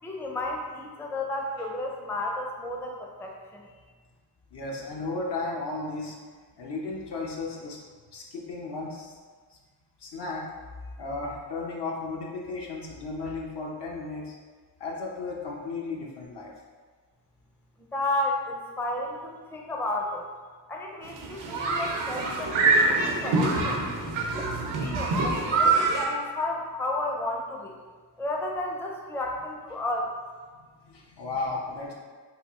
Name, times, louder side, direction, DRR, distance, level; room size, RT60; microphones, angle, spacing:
voice 1, 0.0-3.6 17.9-20.2 20.7-23.8 24.4-24.5 24.8-27.7 28.2-30.1, left 2 dB, 5° left, 0 dB, 0.4 m, -32 dB
voice 2, 4.5-6.1 6.6-7.8 8.1-9.2 10.0-10.5 11.0-14.3 14.8-16.5 23.0-23.3 30.9-31.9, left 3 dB, 70° left, -2 dB, 0.8 m, -34 dB
sound 1, 21.0-26.1, right 3 dB, 85° right, 0.7 m, -25 dB
3.5 x 2.3 x 3.5 m, 1.5 s
cardioid pair, 55°, 43 cm